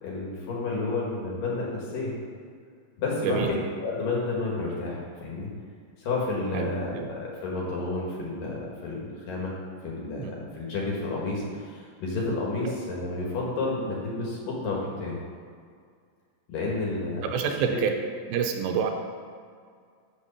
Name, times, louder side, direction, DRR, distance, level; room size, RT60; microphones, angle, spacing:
voice 1, 0.0-2.1 3.0-5.5 6.0-9.5 9.8-15.2 16.5-17.8, left 3 dB, 60° left, -4 dB, 2.9 m, -31 dB
voice 2, 6.5-7.1 10.2-10.3 17.3-17.9 18.3-18.9, right 7 dB, 85° right, 4 dB, 2.8 m, -27 dB
7.4 x 6.4 x 6.9 m, 2.1 s
omnidirectional pair, 5.1 m